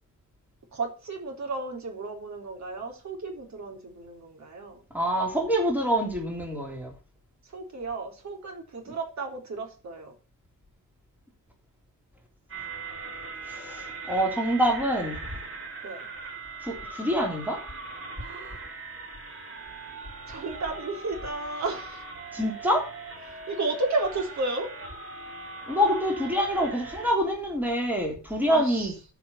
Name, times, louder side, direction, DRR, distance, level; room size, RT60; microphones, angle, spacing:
voice 1, 0.7-4.8 7.4-10.1 15.8-16.1 18.2-18.6 20.3-22.0 23.5-24.7 28.5-28.9, right 3 dB, 55° right, 3 dB, 3.7 m, -33 dB
voice 2, 4.9-6.9 13.5-15.2 16.6-17.6 22.3-22.8 25.7-28.9, equal, 5° right, 1 dB, 3.4 m, -26 dB
sound 1, 12.5-27.1, right 4 dB, 40° right, 3.5 m, -40 dB
13.5 x 6.0 x 5.7 m, 0.34 s
wide cardioid pair, 150°, 33 cm